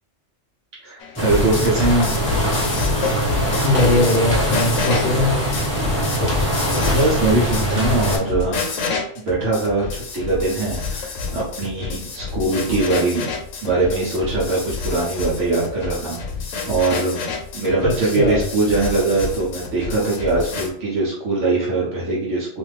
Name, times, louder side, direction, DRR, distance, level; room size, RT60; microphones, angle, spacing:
voice 1, 0.8-2.1 6.9-8.9 9.2-13.3 13.6-16.2 16.7-17.2 17.5-22.6, right 2 dB, 75° right, -6 dB, 1.1 m, -21 dB
sound 1, 1.0-20.7, left 5 dB, 80° left, 1.0 m, -28 dB
sound 2, 1.2-8.2, right 1 dB, 10° right, 1.2 m, -22 dB
voice 2, 3.6-5.4 17.8-18.4, left 2 dB, 55° left, 2 dB, 0.6 m, -20 dB
2.5 x 2.4 x 3.2 m, 0.62 s
omnidirectional pair, 1.3 m